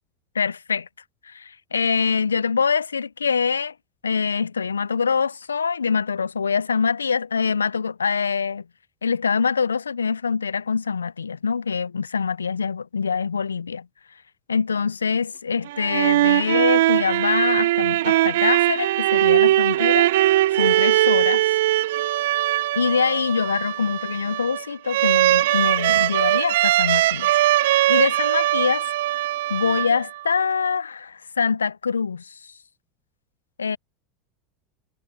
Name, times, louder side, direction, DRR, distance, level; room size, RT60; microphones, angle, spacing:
voice 1, 0.3-0.9 1.2-3.7 4.0-8.7 9.0-13.9 14.5-21.5 22.8-28.9 29.5-32.5 33.6-33.8, left 5 dB, 90° left, 0.4 m, -24 dB
sound 1, 15.7-30.3, right 15 dB, 70° right, 0.7 m, -20 dB
hypercardioid pair, 85°, 0 cm